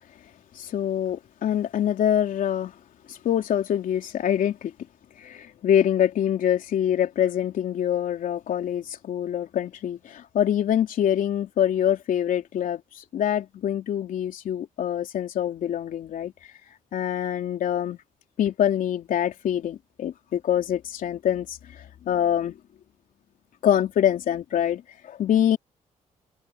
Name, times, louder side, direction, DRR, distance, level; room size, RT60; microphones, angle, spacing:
voice 1, 0.6-2.7 3.1-4.7 5.2-16.3 16.9-18.0 18.4-21.6 22.1-22.5 23.6-25.6, left 10 dB, 75° left, 3.4 m, -25 dB
cardioid pair, 75°, 14 cm